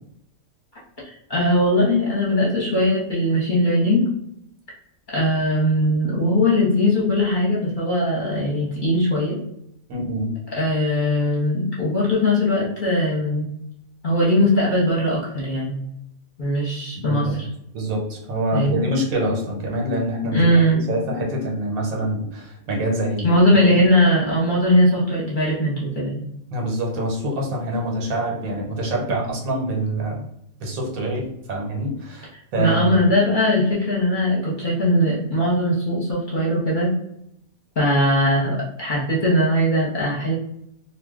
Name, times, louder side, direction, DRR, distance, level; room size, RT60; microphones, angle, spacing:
voice 1, 1.0-4.0 5.1-9.4 10.5-13.5 14.0-15.7 16.4-17.5 18.5-18.9 20.3-20.8 23.2-26.2 32.6-36.9 37.8-40.3, left 1 dB, 40° left, -6 dB, 0.9 m, -20 dB
voice 2, 9.9-10.3 16.9-17.4 17.7-23.3 23.5-23.8 26.5-30.2 30.6-33.0, right 1 dB, 75° right, 0 dB, 1.2 m, -25 dB
2.4 x 2.3 x 3.5 m, 0.76 s
omnidirectional pair, 1.5 m